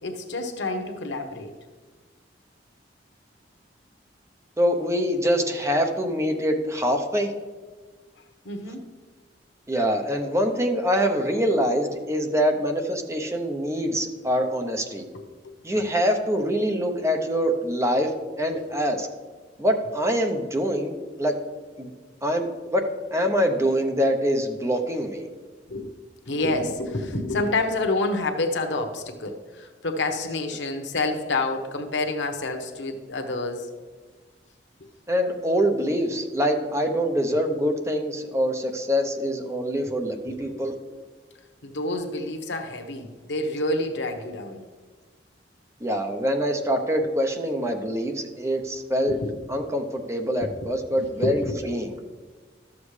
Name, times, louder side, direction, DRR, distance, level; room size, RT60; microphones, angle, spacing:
voice 1, 0.0-1.5 8.4-8.8 15.1-15.6 25.7-25.9 26.3-33.7 41.6-44.6 49.1-49.2 50.4-50.5 50.9-51.6, left 2 dB, 80° left, 4 dB, 1.0 m, -28 dB
voice 2, 4.6-7.3 9.7-15.1 15.6-19.1 19.6-21.3 21.8-21.9 22.2-22.8 23.1-25.3 35.1-40.7 45.8-49.2 49.5-51.9, equal, 15° right, 5 dB, 0.8 m, -24 dB
12.5 x 7.3 x 3.3 m, 1.4 s
head